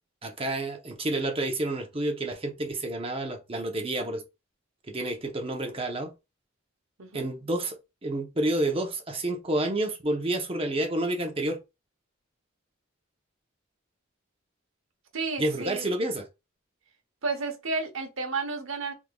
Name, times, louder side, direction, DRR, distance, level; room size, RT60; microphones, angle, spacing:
voice 1, 0.2-4.2 4.9-6.1 7.1-7.8 8.0-11.6 15.4-16.3, right 1 dB, 30° right, 0.8 m, -29 dB
voice 2, 7.0-7.3 15.1-15.9 17.2-18.9, right 4 dB, 80° right, 1.0 m, -32 dB
3.7 x 3.3 x 2.3 m
head